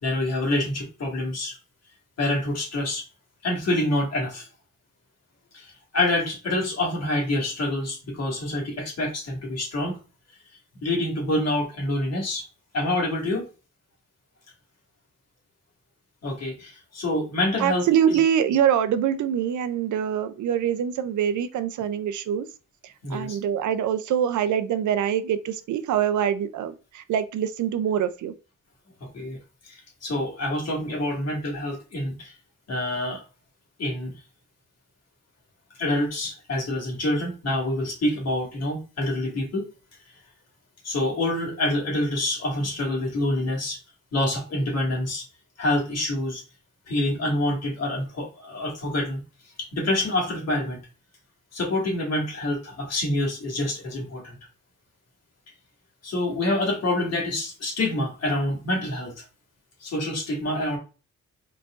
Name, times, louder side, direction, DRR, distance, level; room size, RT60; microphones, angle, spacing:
voice 1, 0.0-1.6 2.2-3.0 3.4-4.5 5.5-10.0 10.7-12.4 12.7-13.4 16.2-18.2 23.0-23.4 29.0-29.4 29.6-32.3 32.7-33.2 33.8-34.1 35.8-39.7 40.8-43.8 44.1-45.2 45.6-46.4 46.9-49.2 49.7-50.8 51.5-54.4 56.0-59.3 59.8-60.8, left 1 dB, 60° left, 2.0 m, -27 dB
voice 2, 17.6-22.5 23.1-28.3, right 9 dB, 80° right, 0.5 m, -24 dB
4.5 x 4.1 x 2.5 m
wide cardioid pair, 145°, 29 cm